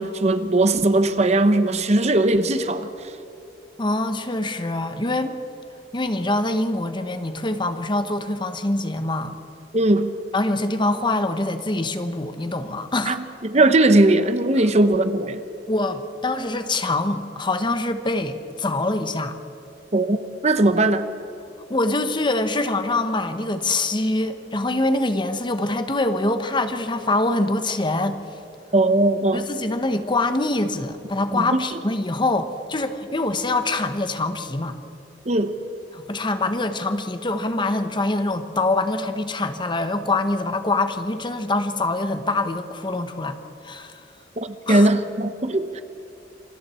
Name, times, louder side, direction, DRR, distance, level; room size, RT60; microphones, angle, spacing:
voice 1, 0.0-2.9 9.7-10.2 13.1-15.4 19.9-20.2 20.4-21.1 28.7-29.5 31.3-31.4 35.2-35.5 44.4-45.8, right 2 dB, 40° right, 10 dB, 1.0 m, -19 dB
voice 2, 3.8-5.4 5.9-9.4 10.3-13.2 14.6-14.7 15.7-19.3 21.7-28.2 29.3-34.8 35.9-44.0 44.7-44.9, left 2 dB, 25° left, 9 dB, 1.1 m, -24 dB
28.0 x 23.5 x 4.4 m, 2.9 s
head